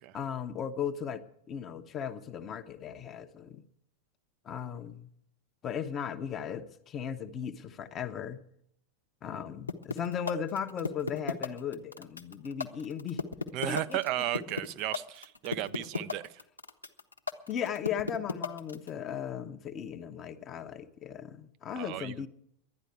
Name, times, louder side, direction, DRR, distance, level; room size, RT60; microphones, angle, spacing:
voice 1, 0.1-1.2 1.5-3.6 4.4-5.1 5.6-8.4 9.2-13.2 13.6-14.0 17.5-22.3, left 8 dB, 30° left, 7 dB, 0.9 m, -37 dB
sound 1, 9.7-18.9, left 4 dB, 80° left, 0.9 m, -34 dB
voice 2, 13.5-16.4 21.8-22.3, right 14 dB, 40° right, 14 dB, 0.5 m, -34 dB
12.0 x 10.0 x 8.5 m, 0.72 s
figure-of-eight pair, 90°, 0 cm